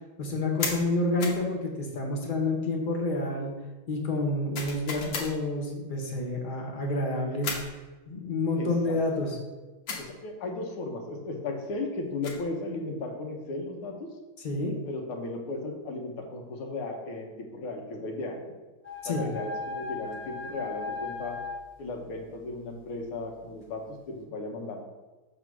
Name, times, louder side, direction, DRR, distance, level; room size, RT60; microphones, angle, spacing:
voice 1, 0.2-3.5 3.9-7.5 8.1-9.3 14.4-14.7 19.0-19.3, left 2 dB, 35° left, 1 dB, 0.8 m, -29 dB
sound 1, 0.6-0.8 1.2-1.5 4.5-5.3 7.4-7.7 9.9-10.1 12.0-12.5, left 4 dB, 70° left, 1.8 m, -34 dB
voice 2, 8.6-9.0 10.0-14.0 14.9-18.5 19.1-21.4 21.8-24.8, left 2 dB, 90° left, 2 dB, 1.9 m, -36 dB
sound 2, 18.8-21.6, left 4 dB, 15° left, 0.4 m, -37 dB
6.6 x 3.7 x 6.0 m, 1.2 s
omnidirectional pair, 2.2 m